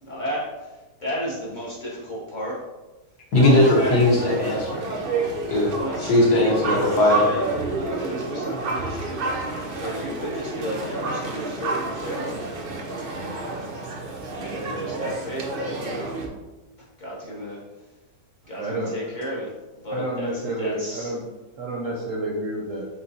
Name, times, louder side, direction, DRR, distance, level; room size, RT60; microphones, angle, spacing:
voice 1, 0.0-2.6 3.5-4.1 5.7-6.4 7.2-7.5 7.7-9.2 9.8-12.4 14.4-16.2 17.0-17.6 18.5-20.3 20.6-21.1, equal, 35° left, -5 dB, 0.8 m, -33 dB
voice 2, 3.3-4.8 5.5-5.7 6.1-7.3, left 1 dB, 65° left, -3 dB, 1.7 m, -18 dB
sound 1, 3.3-16.3, right 3 dB, 90° right, 0.4 m, -29 dB
voice 3, 18.6-19.1 19.9-21.3 21.6-22.9, right 1 dB, 65° right, -1 dB, 0.8 m, -29 dB
4.7 x 3.9 x 2.7 m, 1.1 s
omnidirectional pair, 1.9 m